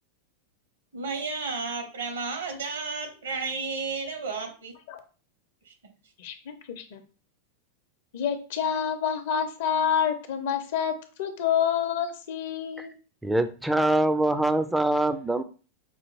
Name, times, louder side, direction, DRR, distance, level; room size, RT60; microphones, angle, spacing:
voice 1, 0.9-4.7 5.6-5.7, right 4 dB, 70° right, 4 dB, 1.0 m, -32 dB
voice 2, 6.2-7.0 8.1-13.0, left 8 dB, 50° left, 8 dB, 0.6 m, -28 dB
voice 3, 13.2-15.4, right 1 dB, 5° right, 10 dB, 0.4 m, -24 dB
5.5 x 2.4 x 3.0 m, 0.36 s
figure-of-eight pair, 90°, 0 cm